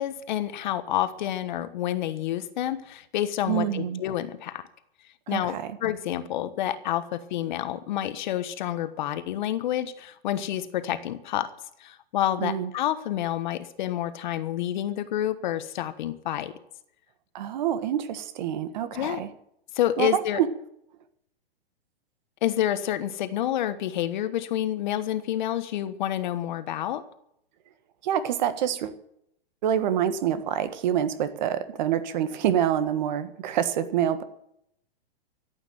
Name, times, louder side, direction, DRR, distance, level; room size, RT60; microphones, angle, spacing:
voice 1, 0.0-4.6 5.3-11.5 11.8-16.5 18.9-19.2 19.7-20.4 22.4-27.0, left 12 dB, 50° left, 12 dB, 1.3 m, -28 dB
voice 2, 3.5-4.0 5.3-5.8 12.4-12.7 17.3-19.3 20.0-20.5 28.0-29.0 29.6-34.2, right 10 dB, 45° right, 12 dB, 1.5 m, -26 dB
14.0 x 8.8 x 9.3 m, 0.75 s
hypercardioid pair, 150°, 30 cm